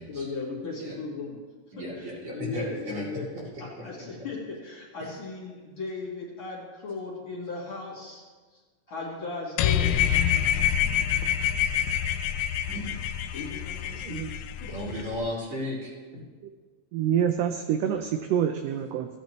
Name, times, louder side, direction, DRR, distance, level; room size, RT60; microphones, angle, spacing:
voice 1, 0.1-1.4 2.0-3.3 3.6-8.2 8.9-9.9 13.3-14.2 14.6-14.7, left 3 dB, 45° left, -5 dB, 2.5 m, -36 dB
voice 2, 1.7-3.1 3.3-3.8 5.0-5.1 12.7-12.8 14.6-15.9, left 1 dB, 45° right, -6 dB, 3.6 m, -35 dB
sound 1, 9.6-15.2, left 9 dB, 80° left, 1.8 m, -26 dB
voice 3, 16.9-19.1, right 9 dB, 75° right, 6 dB, 1.5 m, -26 dB
15.5 x 8.9 x 3.1 m, 1.4 s
omnidirectional pair, 3.3 m